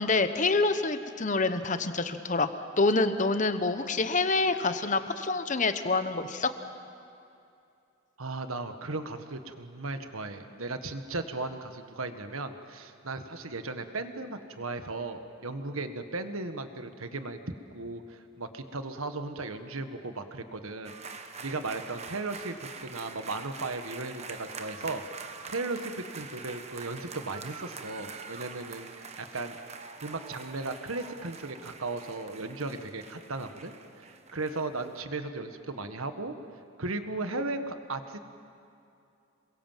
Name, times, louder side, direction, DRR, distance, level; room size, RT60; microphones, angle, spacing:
voice 1, 0.0-2.5 2.8-6.5, left 3 dB, 35° left, 10 dB, 1.1 m, -26 dB
voice 2, 8.2-17.4 17.7-25.0 25.5-29.6 30.0-36.3 36.8-38.2, right 3 dB, 80° right, 8 dB, 1.6 m, -36 dB
sound 1, 20.8-35.0, right 5 dB, 30° right, 1.2 m, -45 dB
27.5 x 22.5 x 7.5 m, 2.6 s
head